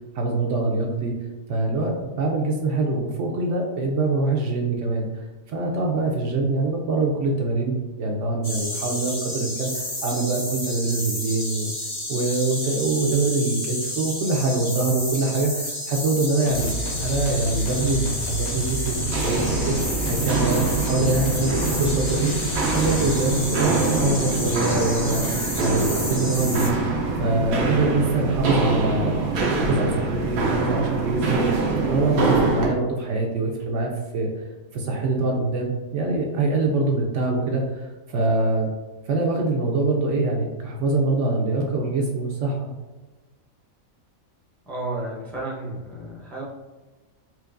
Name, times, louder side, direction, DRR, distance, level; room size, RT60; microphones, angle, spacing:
voice 1, 0.1-1.1 1.5-5.1 5.5-11.7 12.1-16.7 17.0-19.7 20.1-26.8 27.2-34.3 34.7-38.7 39.1-42.7, right 3 dB, 70° right, 0 dB, 0.9 m, -24 dB
sound 1, 8.4-26.7, left 1 dB, 25° left, 0.8 m, -31 dB
sound 2, 16.5-23.2, left 1 dB, 65° left, 0.8 m, -31 dB
Walk footsteps, 18.9-32.7, right 3 dB, 90° right, 1.2 m, -24 dB
voice 2, 44.7-46.4, right 2 dB, ahead, -5 dB, 0.5 m, -32 dB
4.5 x 2.9 x 2.4 m, 1.2 s
omnidirectional pair, 1.4 m